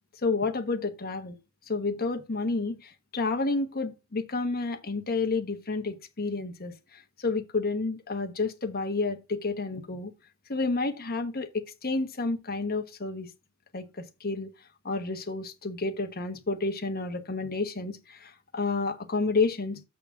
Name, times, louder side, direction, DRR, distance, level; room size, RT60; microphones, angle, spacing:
voice 1, 0.2-1.4 1.7-10.1 10.5-13.3 13.7-14.5 14.8-19.8, left 3 dB, 45° left, 1.2 m, -30 dB
7.2 x 5.1 x 5.5 m
head